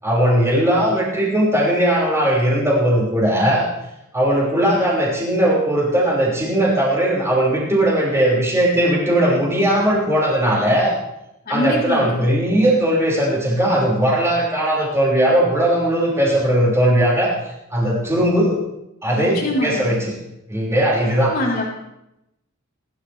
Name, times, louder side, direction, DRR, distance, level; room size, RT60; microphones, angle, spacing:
voice 1, 0.0-3.7 4.1-10.9 11.5-17.4 17.7-18.6 19.0-20.1 20.5-21.3, right 1 dB, 15° right, -5 dB, 5.7 m, -18 dB
voice 2, 11.5-12.2 19.1-20.0 21.3-21.7, left 1 dB, 45° left, -7 dB, 3.9 m, -24 dB
28.5 x 13.0 x 3.5 m, 0.87 s
head